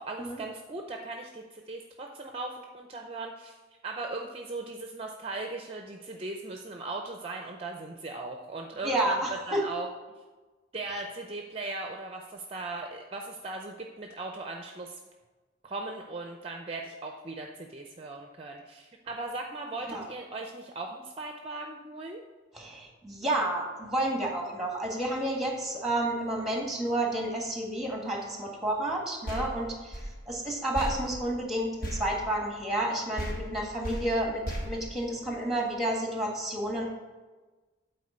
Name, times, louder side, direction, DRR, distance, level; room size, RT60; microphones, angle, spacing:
voice 1, 0.0-3.6 3.8-9.9 10.7-15.0 15.6-22.2, right 2 dB, 30° right, 3 dB, 0.5 m, -38 dB
voice 2, 8.8-9.6 19.9-20.0 22.5-30.0 30.2-36.8, right 1 dB, ahead, 0 dB, 1.6 m, -30 dB
sound 1, 29.3-32.9 33.2-35.6, equal, 50° left, 1.4 m, -38 dB
8.4 x 4.3 x 6.7 m, 1.3 s
head